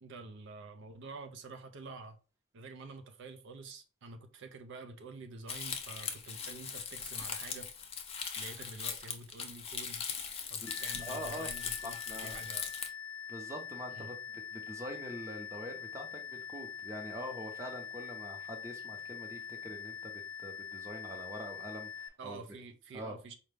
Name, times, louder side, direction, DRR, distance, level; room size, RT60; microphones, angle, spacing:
voice 1, 0.0-2.2 2.5-7.7 8.4-10.1 10.5-12.7 13.9-14.1 22.2-23.3, right 3 dB, 60° right, 0.5 m, -48 dB
Crumpling crinkling, 5.5-12.9, left 6 dB, 30° left, 0.5 m, -40 dB
sound 1, 10.7-22.1, left 8 dB, 85° left, 0.3 m, -44 dB
voice 2, 11.0-11.5 11.8-12.4 13.3-22.4 22.9-23.2, equal, 15° right, 0.7 m, -44 dB
4.8 x 2.2 x 3.3 m
head